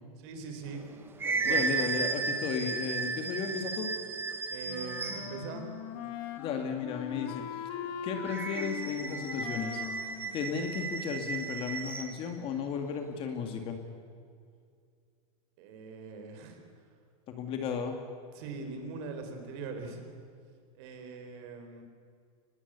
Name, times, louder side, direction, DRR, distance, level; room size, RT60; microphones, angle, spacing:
voice 1, 0.2-0.8 1.2-1.7 4.5-5.7 15.6-16.6 18.3-20.0 20.7-21.8, right 4 dB, 50° right, 5 dB, 4.4 m, -41 dB
sound 1, 0.7-5.5 8.2-12.2, right 4 dB, 10° right, 1.3 m, -34 dB
voice 2, 1.4-3.9 6.4-7.4 8.0-9.8 10.3-13.8 17.3-18.0, left 6 dB, 30° left, 5 dB, 2.1 m, -34 dB
Wind instrument woodwind instrument, 4.7-11.3, left 8 dB, 45° left, 2.1 m, -41 dB
24.0 x 20.0 x 8.2 m, 2.2 s
supercardioid pair, 160°, 18 cm